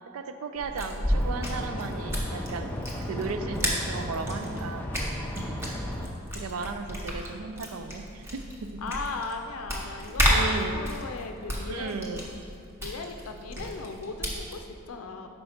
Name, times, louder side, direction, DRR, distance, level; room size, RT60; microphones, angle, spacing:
voice 1, 0.1-2.7 3.1-5.7 6.3-8.8 10.3-10.8 11.7-12.2 13.6-13.8, right 4 dB, 75° right, 8 dB, 0.4 m, -35 dB
sound 1, 0.6-14.6, equal, 10° right, 0.9 m, -32 dB
sound 2, 1.0-6.1, equal, 10° left, 0.5 m, -35 dB
voice 2, 8.8-12.0 12.8-15.3, left 4 dB, 75° left, 6 dB, 0.5 m, -37 dB
5.4 x 4.3 x 5.6 m, 2.5 s
head